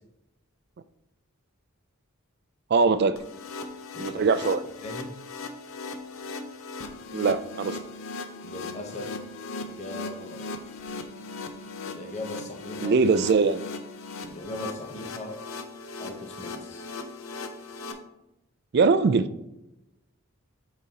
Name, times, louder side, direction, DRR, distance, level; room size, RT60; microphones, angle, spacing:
voice 1, 2.7-3.2 4.0-4.6 7.1-7.8 12.8-13.6 18.7-19.3, right 4 dB, 50° right, 13 dB, 0.3 m, -21 dB
sound 1, 3.2-17.9, left 3 dB, 70° left, 0.7 m, -38 dB
voice 2, 3.9-4.2 4.8-5.1 8.4-9.1 9.7-10.4 11.9-13.0 14.2-15.4 16.0-16.9, left 1 dB, 30° left, 2 dB, 0.8 m, -39 dB
8.0 x 5.0 x 2.9 m, 0.93 s
head